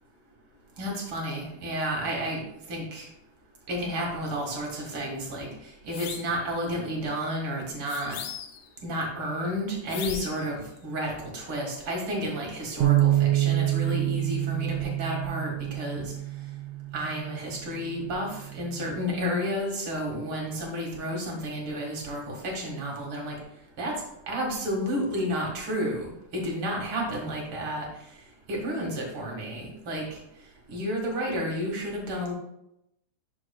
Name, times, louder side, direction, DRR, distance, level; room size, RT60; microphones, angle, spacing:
voice 1, 0.8-2.4 2.7-3.1 3.7-8.2 8.8-16.1 16.9-23.3 23.8-24.0 24.3-27.9 28.5-30.2 30.7-32.3, equal, 45° right, -1 dB, 2.3 m, -31 dB
sound 1, 5.9-6.4 7.9-8.7 9.9-10.5, left 8 dB, 80° left, 2.2 m, -38 dB
Bass guitar, 12.8-19.1, right 15 dB, 85° right, 2.1 m, -27 dB
11.0 x 5.7 x 2.3 m, 0.81 s
omnidirectional pair, 3.6 m